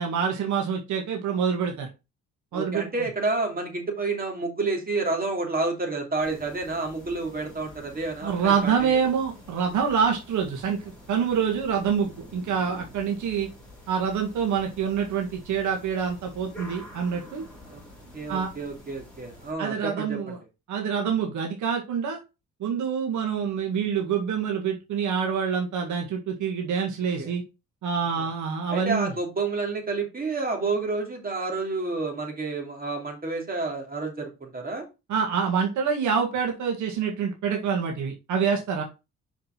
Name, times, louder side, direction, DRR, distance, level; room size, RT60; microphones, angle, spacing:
voice 1, 0.0-1.9 2.5-2.9 8.2-13.5 13.9-17.4 18.3-18.5 19.6-20.4 20.7-22.2 22.6-27.4 27.8-29.1 35.1-38.8, right 6 dB, 80° right, 1 dB, 1.8 m, -26 dB
voice 2, 2.5-9.0 17.7-17.8 18.1-20.2 27.2-27.3 28.2-28.3 28.7-34.9, right 3 dB, 30° right, 2 dB, 2.9 m, -29 dB
sound 1, 6.2-19.5, equal, 5° left, 4.1 m, -47 dB
6.1 x 5.1 x 4.5 m, 0.27 s
cardioid pair, 90°, 30 cm